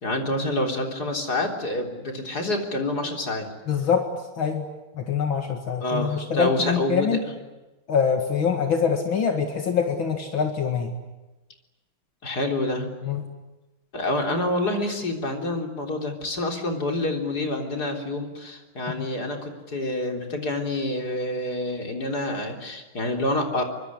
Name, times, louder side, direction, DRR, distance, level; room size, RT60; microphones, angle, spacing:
voice 1, 0.0-3.5 5.8-7.2 12.2-12.9 13.9-23.6, left 1 dB, 50° left, 3 dB, 4.2 m, -27 dB
voice 2, 3.7-4.1 4.4-4.6 5.0-7.2 7.9-10.9 13.0-13.2, left 6 dB, 70° left, 4 dB, 2.8 m, -24 dB
24.5 x 24.0 x 9.8 m, 1.1 s
omnidirectional pair, 2.3 m